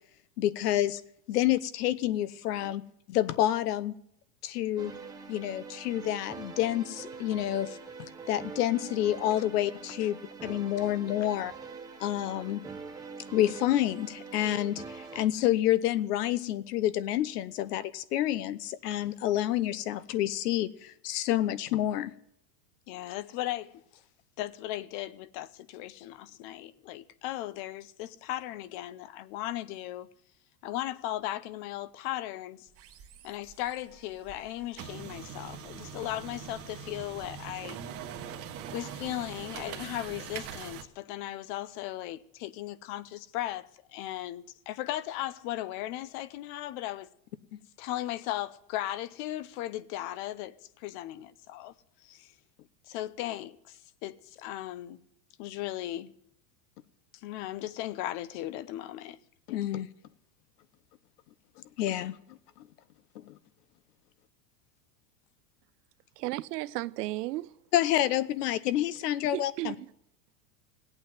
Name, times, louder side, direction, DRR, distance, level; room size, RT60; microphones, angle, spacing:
voice 1, 0.4-1.0 1.3-2.8 3.1-3.9 4.4-4.9 5.3-11.5 12.0-12.6 13.3-22.1 47.5-47.6 59.5-59.9 61.8-62.4 63.3-63.4 67.7-69.7, left 13 dB, 75° left, 1.1 m, -28 dB
sound 1, 4.8-15.2, right 5 dB, 10° right, 0.8 m, -44 dB
voice 2, 22.9-23.7 24.4-30.1 30.6-32.7 33.2-37.8 38.7-47.1 47.8-51.7 52.0-52.3 52.9-55.0 55.4-56.1 57.2-59.2, left 14 dB, 35° left, 0.5 m, -37 dB
sound 2, 32.7-40.8, right 8 dB, 30° right, 1.2 m, -43 dB
voice 3, 66.2-67.6 69.3-69.9, right 18 dB, 80° right, 0.7 m, -34 dB
17.0 x 8.7 x 9.3 m
supercardioid pair, 160°, 47 cm